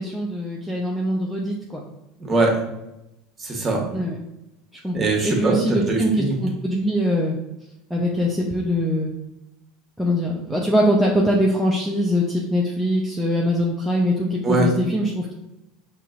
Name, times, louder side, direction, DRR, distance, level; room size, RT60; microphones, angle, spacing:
voice 1, 0.0-1.8 3.9-4.2 4.8-4.9 5.2-6.1 6.4-7.4 7.9-9.1 10.0-15.3, equal, ahead, -3 dB, 0.6 m, -22 dB
voice 2, 2.2-2.6 3.4-3.9 4.9-6.4 14.4-14.7, right 3 dB, 25° right, 0 dB, 1.3 m, -21 dB
5.3 x 2.9 x 2.5 m, 0.92 s
hypercardioid pair, 85°, 0 cm